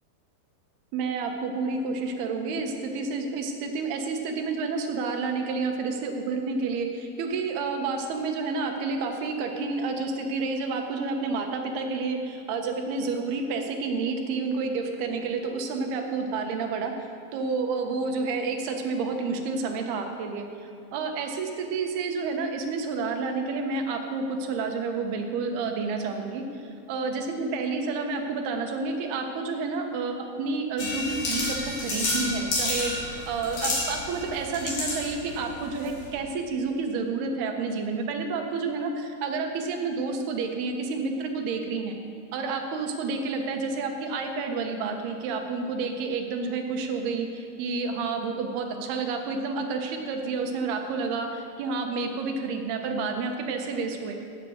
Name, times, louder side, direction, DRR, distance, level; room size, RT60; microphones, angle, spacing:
voice 1, 0.9-16.9 17.3-20.5 20.9-42.0 42.3-54.2, right 4 dB, 75° right, 4 dB, 3.1 m, -30 dB
sound 1, 30.8-36.1, left 2 dB, 70° left, 5.1 m, -31 dB
16.5 x 8.4 x 6.5 m, 2.3 s
omnidirectional pair, 4.6 m